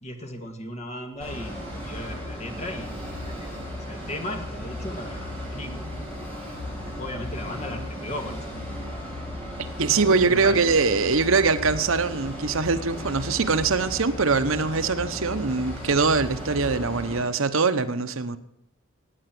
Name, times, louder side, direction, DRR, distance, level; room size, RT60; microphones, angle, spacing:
voice 1, 0.0-5.9 6.8-8.8 10.0-10.8, left 1 dB, 30° left, 4 dB, 2.1 m, -37 dB
sound 1, 1.2-17.2, left 1 dB, 5° left, 7.7 m, -35 dB
voice 2, 9.8-18.4, right 4 dB, 70° right, 10 dB, 0.9 m, -23 dB
16.5 x 9.1 x 7.7 m, 0.70 s
head